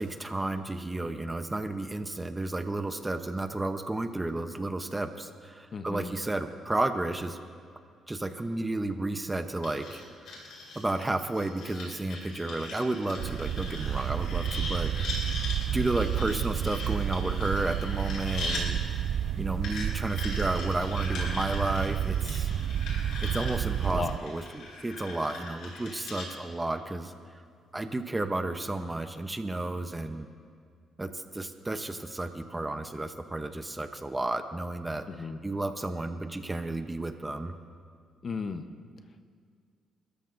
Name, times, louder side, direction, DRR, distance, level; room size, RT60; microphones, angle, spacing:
voice 1, 0.0-7.4 8.1-10.4 10.7-14.9 15.7-18.8 19.4-22.5 23.2-27.1 27.7-30.3 31.0-37.6, right 2 dB, 15° right, 8 dB, 0.8 m, -32 dB
voice 2, 5.7-6.1 23.9-24.2 35.1-35.4 38.2-38.6, left 4 dB, 45° left, 8 dB, 0.9 m, -34 dB
sound 1, 9.6-18.6 19.6-26.3, left 3 dB, 80° left, 4.1 m, -40 dB
sound 2, 13.2-24.2, right 10 dB, 70° right, 0.3 m, -30 dB
29.5 x 13.5 x 2.6 m, 2.1 s
cardioid pair, 90°, 0 cm